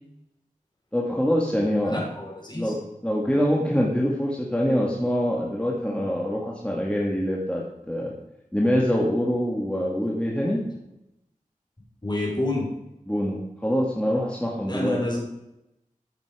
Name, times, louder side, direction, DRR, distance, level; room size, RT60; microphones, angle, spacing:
voice 1, 0.9-2.0 2.5-8.1 8.5-10.6 13.1-15.0, equal, 5° left, -3 dB, 2.1 m, -25 dB
voice 2, 1.9-2.7 12.0-12.7 14.7-15.2, left 1 dB, 30° left, -1 dB, 4.2 m, -28 dB
14.0 x 7.3 x 5.1 m, 0.89 s
wide cardioid pair, 60°, 14 cm